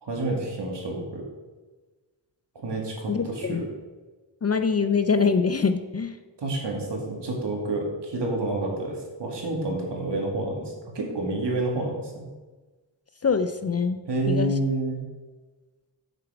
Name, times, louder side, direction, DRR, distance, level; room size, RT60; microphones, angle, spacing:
voice 1, 0.0-1.2 2.6-3.6 6.4-12.3 14.1-15.0, right 2 dB, 70° right, -1 dB, 2.2 m, -29 dB
voice 2, 3.1-3.6 4.4-6.1 13.2-14.0 14.3-14.5, left 5 dB, 35° left, 9 dB, 0.4 m, -24 dB
8.0 x 6.9 x 4.9 m, 1.3 s
wide cardioid pair, 145°, 44 cm